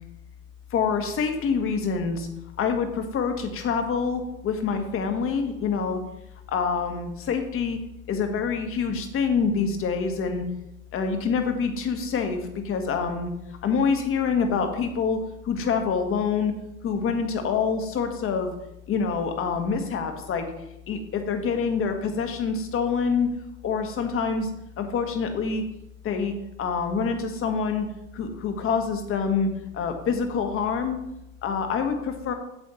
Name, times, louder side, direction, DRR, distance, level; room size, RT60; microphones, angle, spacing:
voice 1, 0.7-2.3 2.6-6.0 6.5-7.8 8.1-10.4 10.9-13.3 13.6-15.2 15.4-16.5 16.8-18.5 18.9-20.5 20.9-23.3 23.6-24.5 24.8-25.6 26.0-26.3 26.6-27.9 28.1-31.0 31.4-32.3, left 5 dB, 30° left, 6 dB, 1.5 m, -26 dB
8.0 x 7.4 x 4.3 m, 0.86 s
hypercardioid pair, 90°, 42 cm